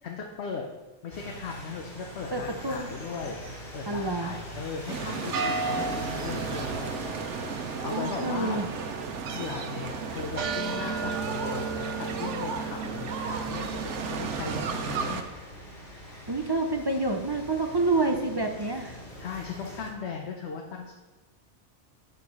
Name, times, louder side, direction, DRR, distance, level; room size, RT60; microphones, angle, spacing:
voice 1, 0.0-0.7 1.0-3.4 3.7-6.9 7.8-8.6 9.3-15.2 19.2-20.9, left 5 dB, 70° left, 1 dB, 1.1 m, -37 dB
sound 1, 1.1-19.9, equal, 45° left, 2.2 m, -43 dB
voice 2, 2.3-2.9 3.9-4.4 7.9-8.7 16.3-19.0, right 2 dB, 30° right, 4 dB, 0.5 m, -28 dB
sound 2, 4.9-15.2, right 5 dB, 85° right, 1.1 m, -32 dB
8.2 x 4.8 x 5.4 m, 1.3 s
omnidirectional pair, 1.2 m